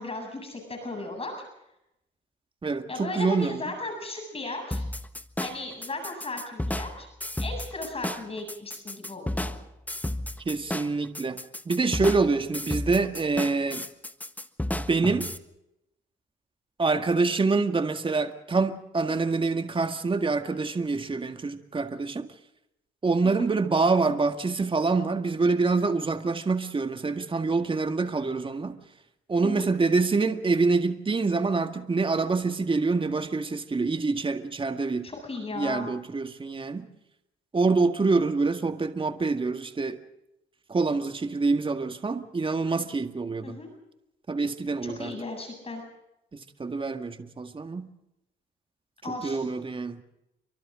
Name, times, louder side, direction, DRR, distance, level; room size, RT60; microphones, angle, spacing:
voice 1, 0.0-1.3 2.9-4.8 5.4-7.1 7.4-9.5 23.2-23.4 29.4-29.6 35.0-35.9 43.4-43.7 44.8-45.8 49.0-49.5, left 2 dB, 30° left, 7.8 m, -36 dB
voice 2, 2.6-3.6 10.5-11.4 11.7-13.9 14.7-15.3 16.8-22.3 23.0-28.8 29.3-35.1 35.6-36.9 37.5-40.0 40.7-43.6 44.3-45.1 46.6-47.9 49.2-50.0, right 4 dB, 25° right, 1.9 m, -26 dB
sound 1, 4.7-15.4, left 1 dB, 10° left, 1.4 m, -33 dB
30.0 x 25.0 x 3.8 m
cardioid pair, 90°, 20 cm